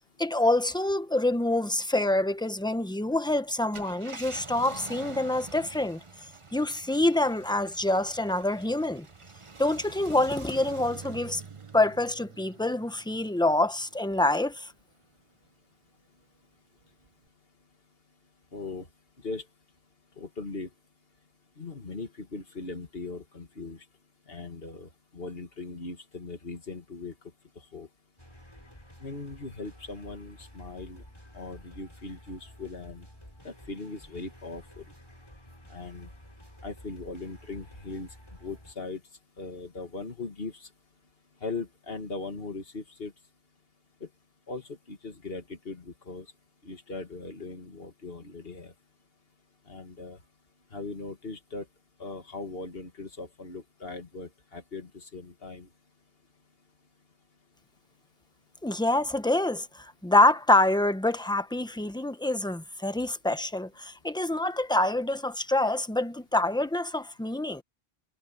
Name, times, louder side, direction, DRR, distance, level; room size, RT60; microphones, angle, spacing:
voice 1, 0.2-6.0 6.5-9.0 9.6-11.4 11.7-14.7 58.6-67.6, left 2 dB, 5° left, 0.9 m, -26 dB
Car, 3.6-14.4 14.9-15.0 17.0-17.3, right 4 dB, 30° right, 1.0 m, -46 dB
voice 2, 18.5-18.9 19.2-19.4 20.2-20.7 21.6-23.8 24.3-27.1 27.7-27.9 29.0-31.0 31.3-33.1 33.4-34.8 35.7-36.1 36.6-38.1 38.4-39.0 39.4-40.7 41.4-43.1 44.0-44.1 44.5-46.3 46.6-48.7 49.7-50.2 50.7-51.6 52.0-55.7, left 3 dB, 65° left, 2.4 m, -39 dB
sound 1, 28.2-38.7, equal, 25° left, 6.2 m, -51 dB
omnidirectional pair, 1.1 m